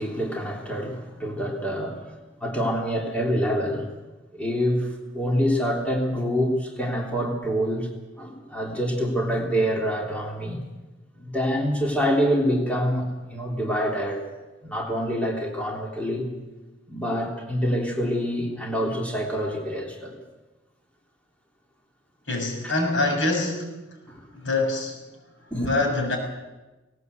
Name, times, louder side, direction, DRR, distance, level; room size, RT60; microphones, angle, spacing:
voice 1, 0.0-2.1 2.4-3.9 4.3-4.9 5.1-7.9 8.2-10.6 11.1-14.2 14.6-16.3 16.9-20.2 22.6-22.7 24.1-24.3 25.5-25.7, equal, 5° left, -1 dB, 3.3 m, -26 dB
voice 2, 22.3-23.7 24.3-25.0 25.5-26.2, left 2 dB, 90° left, 2 dB, 6.9 m, -24 dB
18.5 x 18.5 x 8.3 m, 1.1 s
head